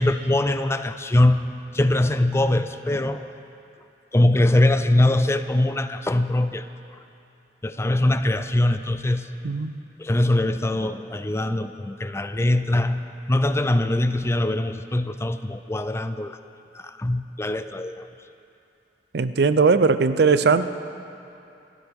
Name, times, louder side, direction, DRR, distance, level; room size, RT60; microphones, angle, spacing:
voice 1, 0.0-1.4 1.7-3.3 4.1-6.7 7.6-9.3 10.0-13.0 13.3-16.4 16.7-18.1, left 1 dB, 15° left, 10 dB, 0.4 m, -22 dB
voice 2, 9.4-9.8 19.1-20.7, right 4 dB, 65° right, 12 dB, 0.5 m, -19 dB
26.0 x 12.5 x 3.6 m, 2.7 s
head